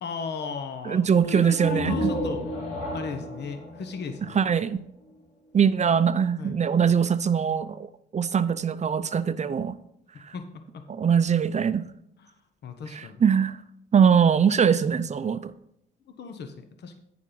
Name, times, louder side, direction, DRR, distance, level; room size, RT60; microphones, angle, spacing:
voice 1, 0.0-2.4 2.9-4.4 6.0-6.6 10.1-10.8 12.2-12.3 12.6-13.2 16.1-16.9, left 5 dB, 60° left, 7 dB, 1.0 m, -36 dB
voice 2, 0.9-2.1 4.4-4.8 5.5-9.7 10.9-11.9 13.2-13.6 13.9-15.5, right 7 dB, 35° right, 13 dB, 0.6 m, -22 dB
sound 1, 1.5-5.1, left 1 dB, 75° left, 2.8 m, -32 dB
9.6 x 7.4 x 4.0 m, 0.73 s
cardioid pair, 90°, 20 cm